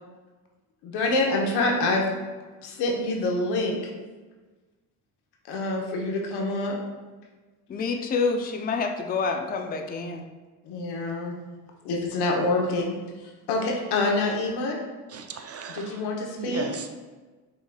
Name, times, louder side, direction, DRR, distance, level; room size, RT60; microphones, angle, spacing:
voice 1, 0.8-2.0 2.6-3.8 5.5-6.8 10.6-11.3 11.8-12.9 13.2-14.8 15.7-16.7, left 2 dB, 80° left, 0 dB, 0.9 m, -26 dB
voice 2, 7.7-10.3, left 4 dB, 25° left, 5 dB, 0.4 m, -27 dB
voice 3, 15.1-15.9 16.4-16.9, right 5 dB, 40° right, 6 dB, 0.4 m, -36 dB
5.5 x 3.2 x 2.2 m, 1.3 s
supercardioid pair, 75°, 39 cm